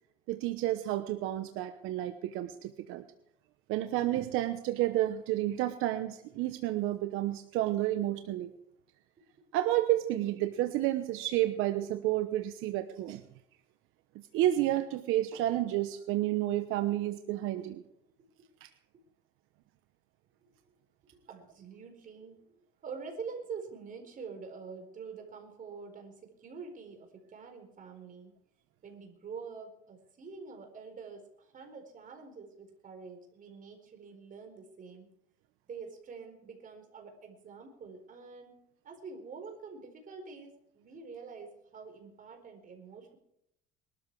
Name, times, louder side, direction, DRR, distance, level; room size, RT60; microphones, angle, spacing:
voice 1, 0.3-3.0 3.7-8.5 9.5-13.2 14.3-17.8 18.6-18.7, right 14 dB, 75° right, 9 dB, 1.1 m, -30 dB
voice 2, 21.3-22.4 22.8-28.3 28.8-35.1 35.7-43.2, right 5 dB, 40° right, 4 dB, 4.3 m, -46 dB
21.5 x 13.0 x 4.7 m, 0.78 s
cardioid pair, 120°, 21 cm